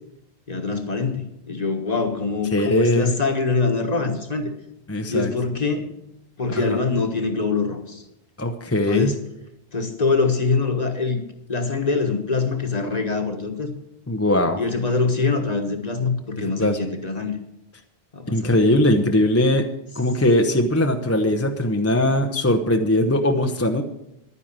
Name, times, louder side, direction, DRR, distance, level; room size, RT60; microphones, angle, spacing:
voice 1, 0.5-4.5 5.1-5.9 6.4-8.0 8.9-9.1 9.7-11.2 11.5-13.7 14.6-17.4 18.1-18.5, left 4 dB, 40° left, 5 dB, 1.6 m, -24 dB
voice 2, 2.5-3.1 4.9-5.3 6.7-6.8 8.4-9.1 14.1-14.6 16.4-16.8 18.3-19.6 19.9-23.8, left 1 dB, 15° left, 5 dB, 0.8 m, -20 dB
11.0 x 9.8 x 7.4 m, 0.85 s
omnidirectional pair, 1.1 m